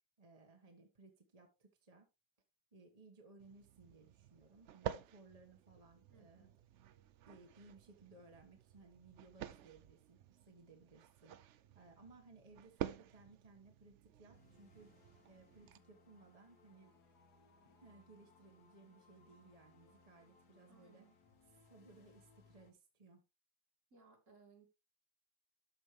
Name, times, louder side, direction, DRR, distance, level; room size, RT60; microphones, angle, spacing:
voice 1, 0.2-2.1 2.7-6.5 7.2-16.9 17.8-21.0 21.7-23.2, right 3 dB, 25° right, 3 dB, 1.4 m, -62 dB
sound 1, 3.4-15.8, right 10 dB, 80° right, 0.6 m, -50 dB
voice 2, 6.1-6.6 20.7-21.2 23.9-24.7, right 4 dB, 45° right, 2 dB, 2.6 m, -65 dB
sound 2, 14.3-22.7, left 3 dB, 70° left, 1.9 m, -68 dB
12.5 x 5.4 x 3.2 m, 0.26 s
omnidirectional pair, 1.9 m